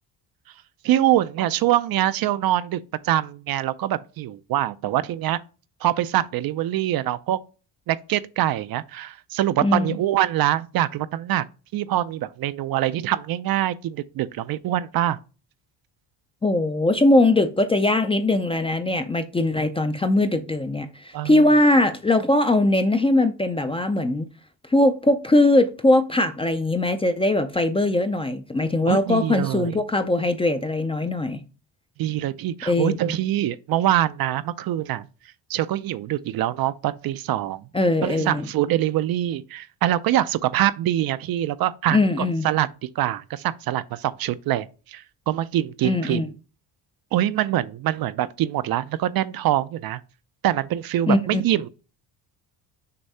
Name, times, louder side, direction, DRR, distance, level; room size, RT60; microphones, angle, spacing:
voice 1, 0.8-5.4 5.8-7.4 7.9-11.4 11.7-15.2 21.1-21.5 28.9-29.8 32.0-35.1 35.5-37.6 38.0-42.7 43.0-46.3 47.1-50.0 50.4-51.7, right 13 dB, 55° right, 0.5 m, -24 dB
voice 2, 9.6-10.0 16.4-24.3 24.7-31.4 32.7-33.2 37.7-38.5 41.9-42.5 45.8-46.3 51.1-51.4, left 2 dB, 15° left, 0.4 m, -21 dB
6.7 x 2.7 x 5.4 m
cardioid pair, 130°, 44 cm